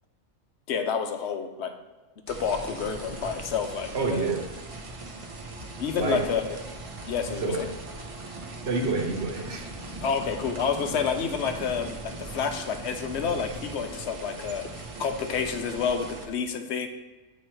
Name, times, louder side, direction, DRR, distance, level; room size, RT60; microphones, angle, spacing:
voice 1, 0.7-1.7 2.3-4.3 5.8-6.6 7.1-7.7 10.0-16.9, left 6 dB, 65° left, 6 dB, 0.9 m, -29 dB
sound 1, 2.3-16.3, right 2 dB, 35° right, 0.5 m, -40 dB
voice 2, 3.9-4.4 6.0-6.2 7.3-7.6 8.6-9.6, right 4 dB, 55° right, 1 dB, 1.2 m, -28 dB
8.9 x 3.1 x 4.3 m, 1.2 s
omnidirectional pair, 1.3 m